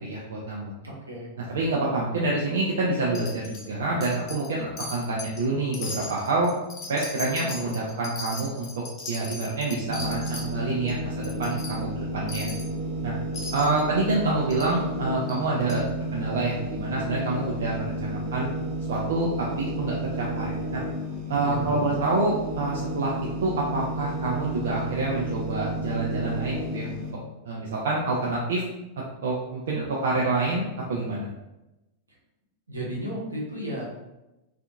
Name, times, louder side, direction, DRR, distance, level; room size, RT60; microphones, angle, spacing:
voice 1, 0.0-0.7 1.5-6.5 6.9-8.7 9.1-12.5 13.0-13.1 13.5-15.8 16.1-18.5 18.9-20.8 21.3-23.1 23.4-27.1 27.5-28.6 29.2-30.6 30.9-31.3, right 2 dB, 60° right, -4 dB, 0.4 m, -27 dB
voice 2, 0.8-1.3 21.4-21.8 32.7-33.8, right 1 dB, 80° right, -5 dB, 0.8 m, -33 dB
Wind chime, 3.1-3.7 4.0-4.5 4.8-5.4 5.7-10.5 10.9-11.0 11.2-11.7 12.3-12.7 13.3-13.8 14.5-14.7 15.3-15.4 15.7-15.8, left 3 dB, 35° left, 0.6 m, -38 dB
sound 1, 9.9-27.1, right 1 dB, 40° right, 0.9 m, -32 dB
2.6 x 2.4 x 2.3 m, 0.97 s
figure-of-eight pair, 90°, 0 cm